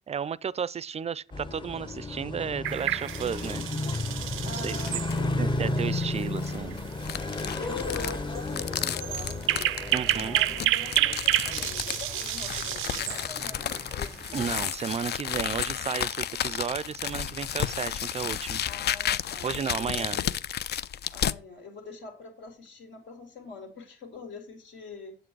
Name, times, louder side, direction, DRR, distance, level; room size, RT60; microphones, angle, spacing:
voice 1, 0.1-3.7 4.4-4.8 5.4-6.8 9.9-10.4 14.3-18.7 19.4-20.2, right 7 dB, 35° right, 0.4 m, -33 dB
sound 1, 1.3-14.5, left 2 dB, 25° left, 0.9 m, -34 dB
sound 2, 2.6-15.0, right 16 dB, 90° right, 0.5 m, -31 dB
sound 3, 3.1-3.6 4.1-4.2 4.7-5.3 6.2-21.4, left 10 dB, 55° left, 0.5 m, -33 dB
voice 2, 4.4-5.5 7.6-9.7 10.1-13.8 18.7-20.3 21.1-25.2, left 4 dB, 75° left, 2.6 m, -43 dB
7.8 x 7.7 x 4.6 m
cardioid pair, 90°, 20 cm